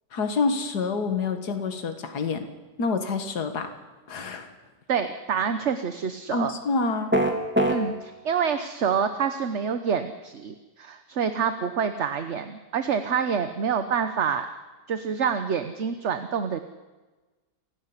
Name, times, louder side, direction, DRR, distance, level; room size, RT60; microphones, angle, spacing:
voice 1, 0.1-2.5 2.8-3.7 4.1-4.5 6.3-7.1, left 4 dB, 70° left, 7 dB, 2.3 m, -27 dB
voice 2, 4.9-6.5 7.7-14.5 14.9-16.6, right 7 dB, 50° right, 9 dB, 1.2 m, -27 dB
sound 1, 7.1-7.8, right 1 dB, 5° right, 2.5 m, -20 dB
28.5 x 12.0 x 9.8 m, 1.2 s
omnidirectional pair, 1.8 m